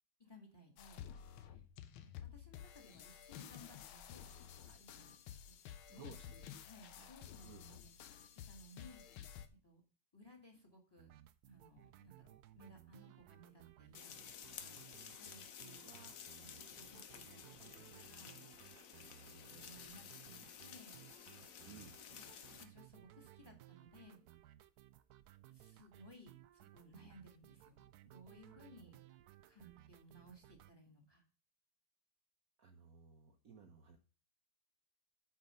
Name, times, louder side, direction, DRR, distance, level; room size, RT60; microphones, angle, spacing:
voice 1, 0.2-1.6 2.0-4.3 4.8-5.2 5.4-5.5 5.9-8.2 8.5-9.0 9.6-9.8 10.1-11.2 11.4-14.1 14.6-14.8 15.2-15.9 16.4-18.4 19.5-21.0 22.2-24.2 25.5-29.0 29.5-31.2, left 1 dB, 10° left, 3 dB, 1.6 m, -61 dB
sound 1, 0.8-9.5, left 9 dB, 85° left, 1.6 m, -53 dB
voice 2, 5.9-6.4 6.9-7.1 7.4-7.6 15.8-16.2 19.0-19.8 21.6-22.0 28.5-28.6 32.6-34.0, right 5 dB, 55° right, 4 dB, 1.0 m, -59 dB
sound 2, 11.0-30.7, right 14 dB, 90° right, 0.8 m, -61 dB
sound 3, 13.9-22.6, left 8 dB, 60° left, 0.9 m, -53 dB
8.7 x 4.7 x 5.5 m, 0.35 s
omnidirectional pair, 2.3 m